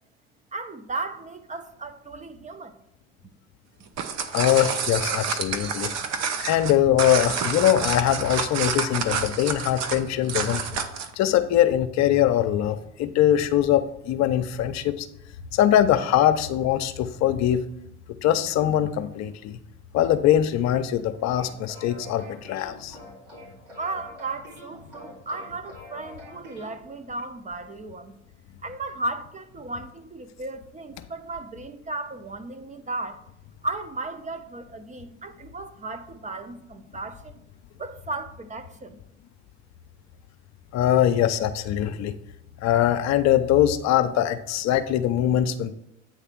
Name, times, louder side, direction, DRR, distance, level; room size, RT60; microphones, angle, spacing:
voice 1, 0.5-2.8 23.8-28.2 28.6-33.2 33.6-37.3 37.8-39.0, right 2 dB, 20° right, 8 dB, 0.6 m, -35 dB
sound 1, 3.8-11.1, right 6 dB, 45° right, 0.9 m, -28 dB
voice 2, 4.3-5.9 6.4-10.6 11.2-15.1 15.5-17.6 18.2-19.6 19.9-23.0 40.7-42.1 42.6-45.7, left 11 dB, 50° left, 10 dB, 0.6 m, -22 dB
sound 2, 21.1-26.7, left 1 dB, 80° right, 2.7 m, -45 dB
8.6 x 3.3 x 5.9 m, 0.80 s
hypercardioid pair, 70°, 36 cm